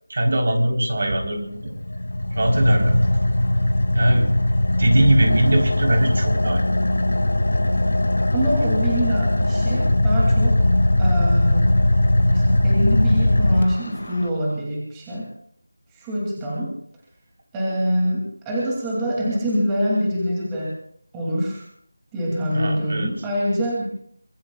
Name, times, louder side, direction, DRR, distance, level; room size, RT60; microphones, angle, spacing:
voice 1, 0.1-1.7 2.3-3.0 3.9-4.3 4.8-6.6 22.5-23.1, right 1 dB, 45° right, 2 dB, 3.8 m, -20 dB
Car / Idling, 1.3-14.3, left 1 dB, 85° left, 2.0 m, -20 dB
voice 2, 8.3-10.7 11.0-11.7 12.3-15.3 15.9-16.8 17.5-20.8 21.1-21.7 22.1-23.8, equal, 10° right, -4 dB, 2.6 m, -25 dB
25.0 x 21.5 x 2.4 m, 0.63 s
figure-of-eight pair, 175°, 0 cm